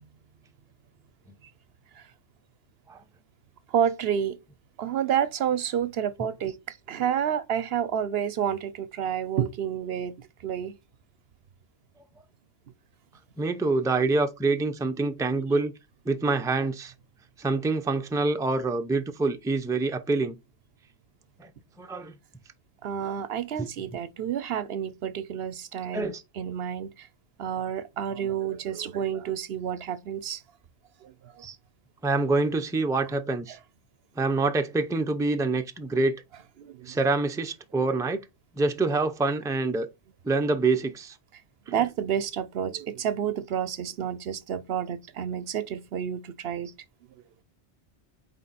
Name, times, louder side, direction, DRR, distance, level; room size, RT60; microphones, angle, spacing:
voice 1, 3.7-4.4 4.8-6.6 6.9-10.7 22.8-27.1 27.4-30.4 31.0-31.4 33.5-33.6 36.6-37.0 41.7-46.7, right 9 dB, 70° right, 0.8 m, -30 dB
voice 2, 13.4-15.7 16.1-16.9 17.4-20.4 21.4-21.5 21.8-22.2 23.6-23.7 25.9-26.2 31.4-31.6 32.0-33.6 34.2-36.2 36.9-38.2 38.6-39.9 40.2-41.2 41.7-41.9, right 3 dB, 5° right, 0.5 m, -26 dB
8.5 x 3.4 x 4.1 m
omnidirectional pair, 1.1 m